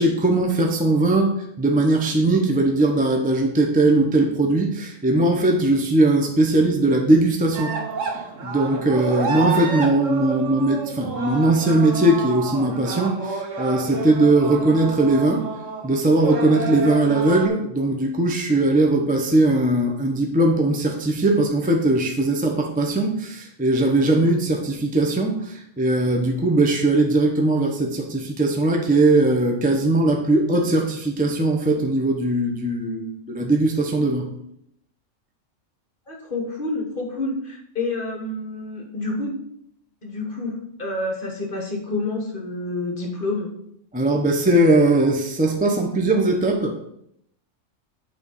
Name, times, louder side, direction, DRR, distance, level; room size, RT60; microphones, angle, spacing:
voice 1, 0.0-7.7 8.0-15.4 15.8-34.3 43.9-46.7, right 2 dB, 10° right, 2 dB, 0.7 m, -20 dB
sound 1, 7.5-17.5, right 5 dB, 75° right, 1.3 m, -29 dB
voice 2, 36.1-39.4 40.0-43.5, left 2 dB, 45° left, 1 dB, 1.4 m, -28 dB
8.5 x 3.8 x 5.5 m, 0.73 s
omnidirectional pair, 1.3 m